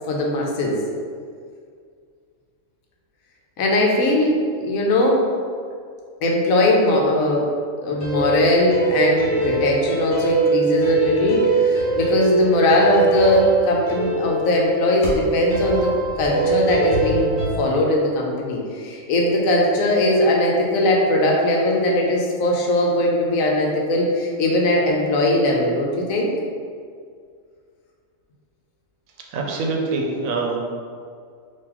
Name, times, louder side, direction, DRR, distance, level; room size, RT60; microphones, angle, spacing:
voice 1, 0.1-0.8 3.6-5.2 6.2-7.5 7.8-15.9 16.2-17.3 17.6-26.3, left 1 dB, 85° left, -1 dB, 1.1 m, -19 dB
sound 1, 8.0-17.6, right 3 dB, 50° left, 1.0 m, -23 dB
voice 2, 29.3-30.6, right 3 dB, 85° right, 1 dB, 1.0 m, -24 dB
2.9 x 2.8 x 3.7 m, 2.1 s
omnidirectional pair, 1.4 m